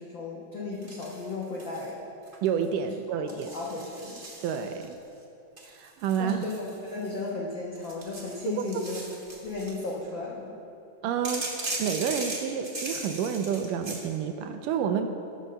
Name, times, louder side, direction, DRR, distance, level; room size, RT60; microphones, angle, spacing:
voice 1, 0.0-2.0 3.3-4.2 6.2-6.6 6.9-9.1 9.4-10.6, left 3 dB, 70° left, -3 dB, 1.1 m, -35 dB
sound 1, 0.8-1.9 2.2-2.6 3.3-4.9 5.6-7.3 7.8-9.9 11.2-14.1, right 2 dB, 60° right, 0.5 m, -38 dB
voice 2, 2.4-3.5 4.4-5.0 5.7-6.5 8.4-8.8 11.0-15.1, right 7 dB, 80° right, 7 dB, 2.1 m, -29 dB
17.5 x 6.3 x 6.7 m, 2.7 s
omnidirectional pair, 4.0 m